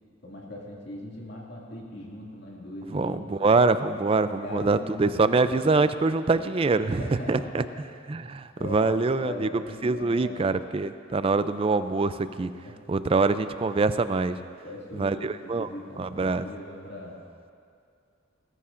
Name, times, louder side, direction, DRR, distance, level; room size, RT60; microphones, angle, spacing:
voice 1, 0.2-3.5 4.1-5.8 7.0-7.7 8.2-10.5 12.6-12.8 14.6-17.2, left 1 dB, 55° left, -3 dB, 2.2 m, -40 dB
voice 2, 2.9-7.0 7.3-7.6 8.1-9.5 9.8-12.5 12.9-14.4 15.0-15.7 16.0-16.5, right 3 dB, 30° right, 12 dB, 0.3 m, -24 dB
19.5 x 14.0 x 2.5 m, 2.3 s
head